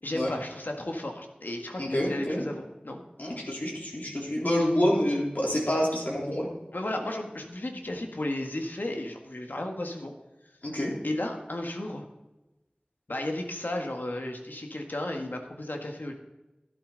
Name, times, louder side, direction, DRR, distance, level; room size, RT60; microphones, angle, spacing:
voice 1, 0.0-3.0 6.7-10.1 11.0-12.0 13.1-16.1, left 1 dB, 85° left, 3 dB, 1.6 m, -34 dB
voice 2, 1.8-2.5 3.2-6.5 10.6-10.9, equal, 70° left, -3 dB, 3.7 m, -27 dB
13.0 x 11.5 x 4.0 m, 1.0 s
wide cardioid pair, 40°, 3 cm